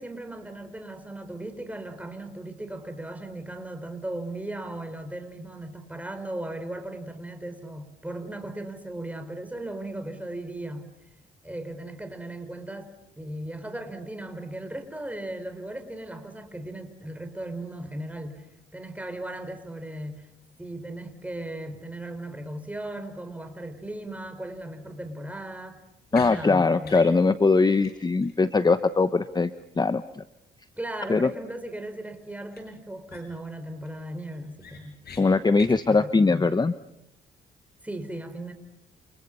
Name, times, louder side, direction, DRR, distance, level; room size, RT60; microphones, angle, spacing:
voice 1, 0.0-10.9 11.4-18.4 18.7-20.3 20.6-25.8 26.1-27.0 30.8-35.0 35.9-36.6 37.8-38.5, right 1 dB, 5° right, 7 dB, 5.1 m, -37 dB
sound 1, 26.1-26.3 26.8-27.1 27.4-27.5 27.8-27.9 28.2-28.3 32.5-32.6 33.1-33.5 33.9-34.0 34.3-35.2 35.5-35.8, left 6 dB, 55° left, 7.4 m, -44 dB
voice 2, 26.1-29.5 29.8-30.2 31.1-31.3 35.2-36.7, left 4 dB, 20° left, 12 dB, 1.0 m, -21 dB
29.5 x 28.5 x 5.6 m, 0.82 s
cardioid pair, 90°, 20 cm